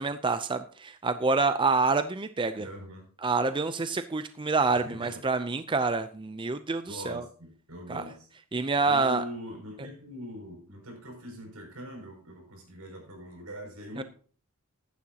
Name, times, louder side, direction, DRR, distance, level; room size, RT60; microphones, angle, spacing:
voice 1, 0.0-2.7 3.2-7.2 7.9-8.0 8.5-9.2 14.0-14.1, right 3 dB, 20° right, 10 dB, 0.5 m, -27 dB
voice 2, 2.6-3.1 4.7-5.2 6.8-8.3 8.9-14.0, equal, 80° right, 2 dB, 6.3 m, -42 dB
15.0 x 11.0 x 2.9 m, 0.43 s
head